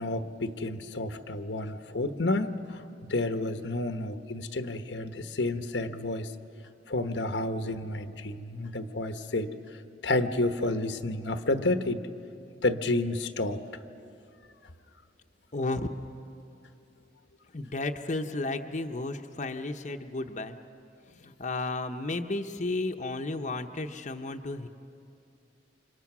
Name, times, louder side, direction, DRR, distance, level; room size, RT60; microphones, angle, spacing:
voice 1, 0.0-6.3 6.9-9.5 10.0-12.0 12.6-13.6, left 2 dB, 90° left, 8 dB, 1.2 m, -30 dB
voice 2, 17.5-20.6 21.2-24.7, left 2 dB, 40° left, 4 dB, 0.8 m, -33 dB
30.0 x 26.0 x 6.1 m, 2.7 s
head